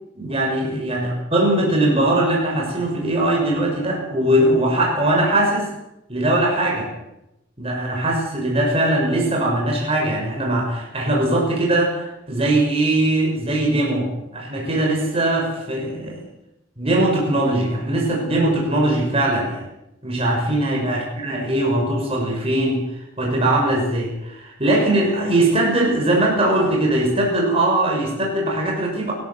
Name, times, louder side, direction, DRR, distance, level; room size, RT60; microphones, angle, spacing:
voice 1, 0.2-5.7 6.1-6.9 7.6-16.2 16.8-19.6 20.0-22.8 23.2-29.1, right 1 dB, 30° right, -1 dB, 6.3 m, -20 dB
27.0 x 13.0 x 7.8 m, 0.88 s
head